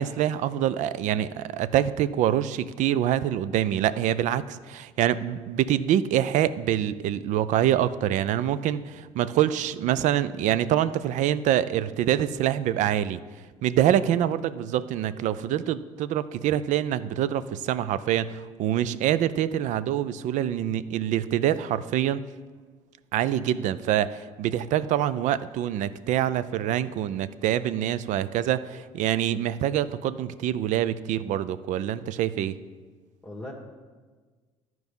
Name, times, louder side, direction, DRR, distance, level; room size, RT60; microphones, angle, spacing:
voice 1, 0.0-13.2 13.6-22.2 23.1-32.6, right 11 dB, 60° right, 16 dB, 0.4 m, -25 dB
voice 2, 13.8-14.2 33.2-33.5, left 1 dB, 5° left, -3 dB, 1.5 m, -40 dB
12.0 x 4.7 x 5.3 m, 1.4 s
supercardioid pair, 70°, 14 cm